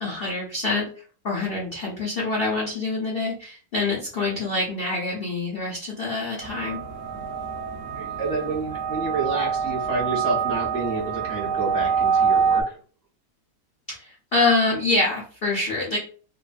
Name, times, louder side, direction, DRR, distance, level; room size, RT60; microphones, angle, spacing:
voice 1, 0.0-0.9 1.2-6.8 13.9-16.0, left 3 dB, 85° left, -4 dB, 0.5 m, -25 dB
sound 1, 6.4-12.6, right 6 dB, 80° right, 0.6 m, -25 dB
voice 2, 7.9-12.8, right 3 dB, 45° right, -5 dB, 0.8 m, -29 dB
3.1 x 2.1 x 2.4 m, 0.41 s
omnidirectional pair, 2.0 m